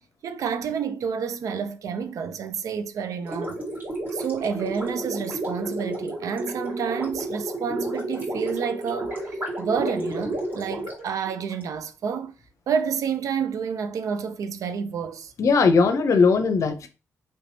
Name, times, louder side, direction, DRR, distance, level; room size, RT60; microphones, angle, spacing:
voice 1, 0.2-3.6 4.1-12.3 12.7-15.3, right 6 dB, 75° right, 0.4 m, -29 dB
Gurgling, 3.2-11.6, right 1 dB, 35° right, 1.8 m, -31 dB
voice 2, 15.4-16.9, left 4 dB, 65° left, 0.6 m, -19 dB
3.3 x 3.1 x 2.7 m
cardioid pair, 85°, 6 cm